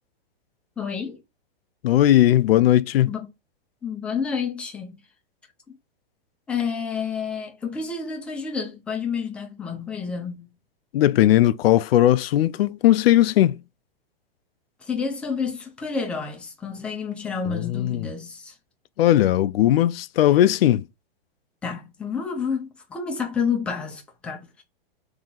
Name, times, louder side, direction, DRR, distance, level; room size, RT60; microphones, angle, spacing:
voice 1, 0.8-1.2 3.1-3.3 3.8-5.0 5.7-5.8 6.5-10.5 14.9-18.5 21.6-24.6, left 6 dB, 5° left, 0.3 m, -29 dB
voice 2, 1.8-3.1 10.9-13.6 17.5-18.1 19.0-20.8, left 13 dB, 75° left, 0.5 m, -18 dB
3.7 x 2.8 x 3.9 m
hypercardioid pair, 155°, 30 cm